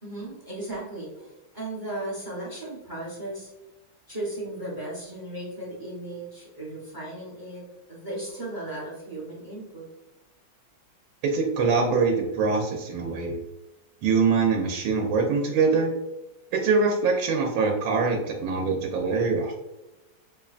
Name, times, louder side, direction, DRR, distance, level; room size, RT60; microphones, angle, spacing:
voice 1, 0.0-3.5 4.1-7.6 7.9-9.8, right 1 dB, 35° right, -5 dB, 0.3 m, -36 dB
voice 2, 11.2-13.4 14.0-15.9 16.5-19.5, right 4 dB, 80° right, 0 dB, 1.3 m, -23 dB
5.4 x 2.2 x 2.4 m, 1.0 s
omnidirectional pair, 2.3 m